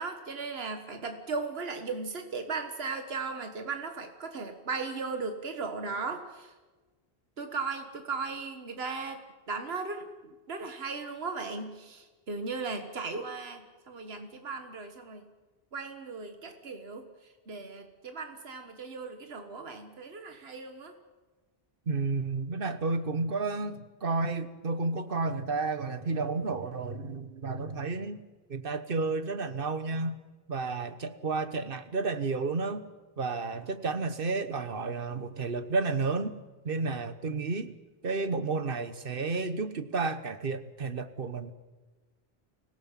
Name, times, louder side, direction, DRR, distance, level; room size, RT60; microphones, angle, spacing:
voice 1, 0.0-6.5 7.4-9.2 9.5-15.2 15.7-17.1 17.5-20.9, right 4 dB, 75° right, 6 dB, 1.7 m, -37 dB
voice 2, 21.9-28.2 28.5-30.2 30.5-32.8 33.2-36.3 36.6-37.7 38.0-41.5, right 3 dB, 60° right, 11 dB, 1.3 m, -31 dB
25.0 x 17.0 x 7.4 m, 1.2 s
omnidirectional pair, 1.0 m